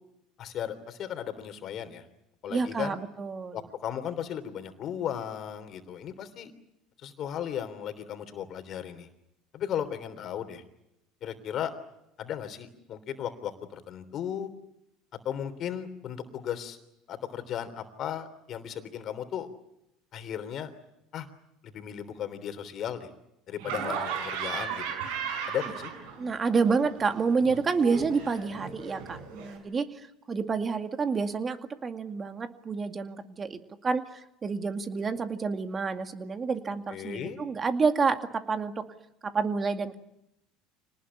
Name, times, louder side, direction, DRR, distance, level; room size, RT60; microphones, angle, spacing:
voice 1, 0.4-2.0 2.4-3.0 3.5-6.5 7.0-9.1 9.5-10.6 11.2-11.7 12.2-14.5 15.2-16.8 17.1-19.5 20.1-20.7 21.1-21.3 21.6-23.1 23.5-24.8 25.5-25.9 36.9-37.4, left 9 dB, 50° left, 10 dB, 3.3 m, -35 dB
voice 2, 2.5-3.6 26.2-30.0 30.3-38.9 39.2-40.0, right 5 dB, 30° right, 8 dB, 2.2 m, -29 dB
Laughter, 23.6-26.4 26.7-29.6, right 6 dB, 70° right, 5.8 m, -36 dB
26.0 x 19.5 x 9.9 m, 0.84 s
hypercardioid pair, 75°, 0 cm